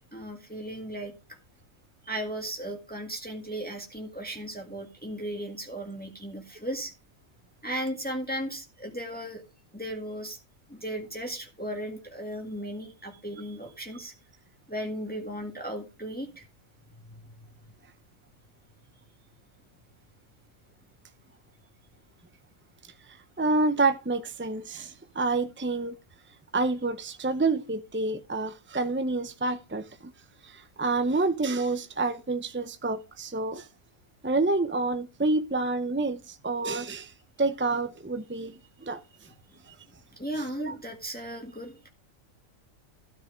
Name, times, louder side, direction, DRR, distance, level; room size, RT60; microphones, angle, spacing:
voice 1, 0.1-1.1 2.0-6.9 7.6-9.4 9.7-10.4 10.7-14.1 14.7-16.4 40.2-41.9, right 1 dB, 5° left, 1.9 m, -36 dB
voice 2, 23.1-26.0 26.5-29.9 30.4-33.7 34.2-37.1 37.4-38.5 38.8-39.0 39.7-39.8 40.6-40.7, right 3 dB, 20° right, 0.3 m, -28 dB
13.0 x 6.4 x 5.1 m
omnidirectional pair, 1.4 m